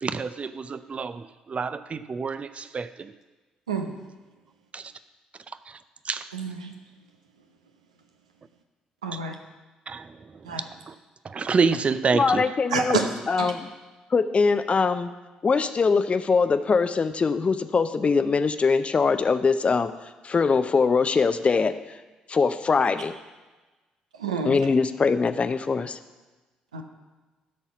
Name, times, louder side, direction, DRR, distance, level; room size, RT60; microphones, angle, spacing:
voice 1, 0.0-3.1 4.7-4.8 6.1-6.3 9.9-10.1 10.9-11.0 11.2-12.4 12.8-12.9, right 5 dB, 35° right, 13 dB, 0.5 m, -27 dB
voice 2, 6.3-6.7 9.0-9.3 10.5-10.6 12.7-13.1 13.4-13.5 24.2-24.6 26.7-26.8, right 5 dB, 85° right, 4 dB, 0.7 m, -29 dB
voice 3, 12.1-13.0 13.3-13.7 14.1-15.1 15.4-19.9 20.2-21.8 22.3-23.1 24.4-26.0, left 4 dB, 35° left, 11 dB, 0.6 m, -22 dB
12.5 x 4.3 x 5.9 m, 1.2 s
figure-of-eight pair, 45°, 4 cm